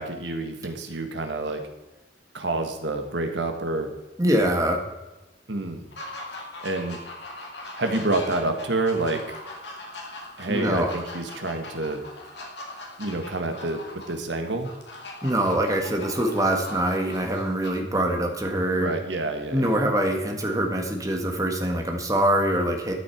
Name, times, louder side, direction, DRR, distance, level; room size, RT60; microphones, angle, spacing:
voice 1, 0.0-1.6 2.3-3.9 5.5-5.8 6.6-7.0 7.8-9.2 10.4-12.0 13.0-13.8 14.1-14.7 18.8-19.9, right 2 dB, 75° right, 6 dB, 1.6 m, -28 dB
voice 2, 4.2-4.8 10.5-10.9 15.2-18.9 19.5-22.9, right 1 dB, 20° right, 3 dB, 1.6 m, -24 dB
sound 1, 5.9-17.7, left 2 dB, 65° left, 2.4 m, -40 dB
13.0 x 8.8 x 4.6 m, 1.1 s
head